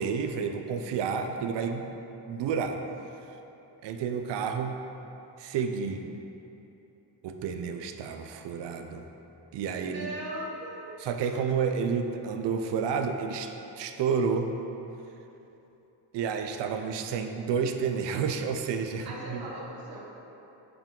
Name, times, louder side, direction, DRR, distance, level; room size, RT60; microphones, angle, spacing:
voice 1, 0.0-1.9 2.3-2.8 3.8-4.7 5.4-6.0 7.2-9.0 9.5-10.1 11.0-13.5 13.8-14.5 16.1-19.4, right 6 dB, 70° right, 5 dB, 0.5 m, -30 dB
voice 2, 9.7-11.0 11.2-11.3 19.0-20.0, right 1 dB, 55° right, -4 dB, 1.1 m, -39 dB
4.9 x 3.8 x 5.2 m, 3.0 s
cardioid pair, 120°, 44 cm